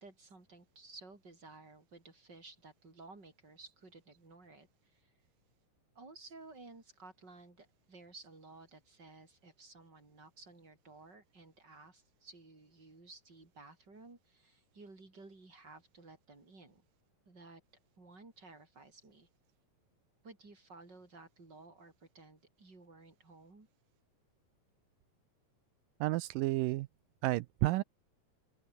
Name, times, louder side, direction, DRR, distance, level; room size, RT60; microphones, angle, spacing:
voice 1, 0.0-5.1 5.9-16.8 17.3-17.6 18.0-19.3 20.2-23.7, right 3 dB, 30° right, 6.2 m, -55 dB
voice 2, 26.0-26.9 27.2-27.8, right 18 dB, 80° right, 2.3 m, -31 dB
open air
omnidirectional pair, 4.0 m